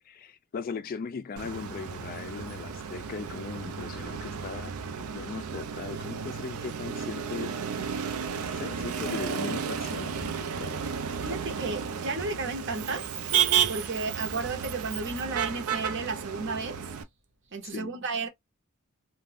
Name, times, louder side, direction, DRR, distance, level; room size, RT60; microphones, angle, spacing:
voice 1, 0.1-7.5 8.5-10.8 17.6-18.0, left 5 dB, 40° left, 0.3 m, -39 dB
Motor vehicle (road), 1.4-17.0, right 7 dB, 85° right, 0.5 m, -32 dB
sound 1, 8.2-8.4 8.7-8.9 10.2-10.4 12.1-12.3 13.6-14.0 14.4-14.6, equal, 5° right, 0.7 m, -47 dB
voice 2, 11.2-13.2 13.7-16.9 17.5-18.3, right 3 dB, 60° right, 0.8 m, -33 dB
2.5 x 2.2 x 3.2 m
head